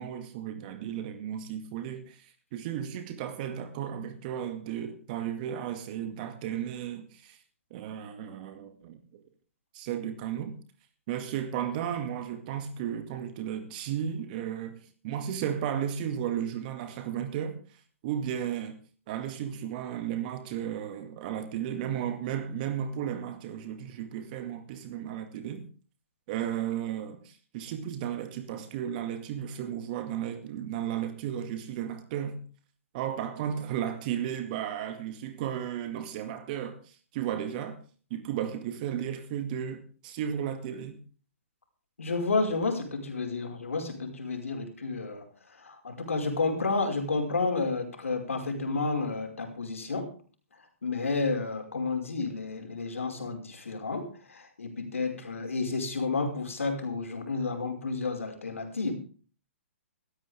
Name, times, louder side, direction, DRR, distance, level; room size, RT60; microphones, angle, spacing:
voice 1, 0.0-7.4 7.7-9.2 9.7-10.6 11.1-18.8 19.1-25.7 26.3-32.4 32.9-37.8 38.1-41.0, right 9 dB, 40° right, 2.2 m, -34 dB
voice 2, 42.0-45.3 45.6-50.1 50.8-58.9, left 3 dB, 80° left, 5.1 m, -31 dB
18.0 x 13.5 x 3.6 m
hypercardioid pair, 130°, 7 cm